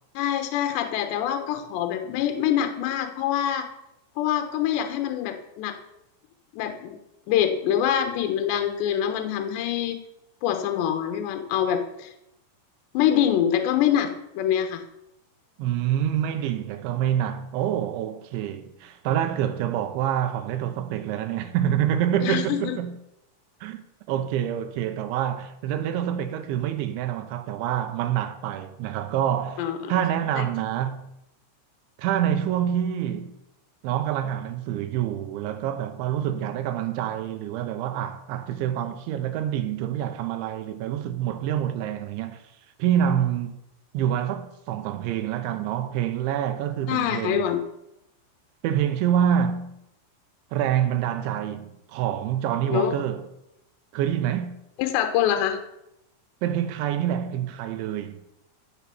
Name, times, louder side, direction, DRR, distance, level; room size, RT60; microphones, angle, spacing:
voice 1, 0.1-3.7 4.2-5.8 6.5-7.0 7.3-10.0 10.4-12.1 12.9-14.8 22.2-22.8 29.6-29.9 30.4-30.5 46.9-47.6 52.7-53.0 54.8-55.6, left 10 dB, 70° left, 3.1 m, -25 dB
voice 2, 15.6-22.9 23.6-31.1 32.0-33.3 33.8-42.4 42.8-43.6 43.9-47.5 48.6-49.8 50.5-53.3 53.9-54.6 56.4-58.2, right 10 dB, 75° right, 3.0 m, -26 dB
15.5 x 6.9 x 7.0 m
omnidirectional pair, 5.9 m